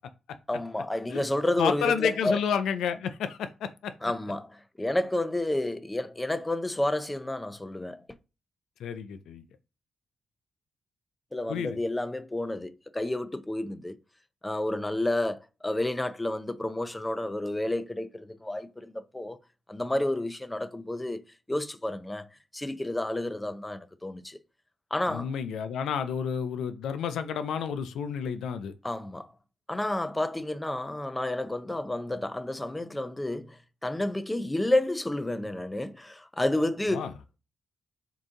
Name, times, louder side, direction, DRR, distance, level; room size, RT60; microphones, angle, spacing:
voice 1, 0.5-2.4 4.0-8.0 11.3-14.0 14.4-19.4 19.7-21.2 21.5-22.3 22.5-24.4 24.9-25.3 28.8-29.3 29.7-37.1, left 1 dB, 15° left, 0.6 m, -30 dB
voice 2, 1.6-3.9 8.8-9.4 11.5-11.8 25.1-28.7 36.9-37.1, left 7 dB, 80° left, 0.4 m, -30 dB
3.8 x 2.5 x 3.7 m
supercardioid pair, 55°, 0 cm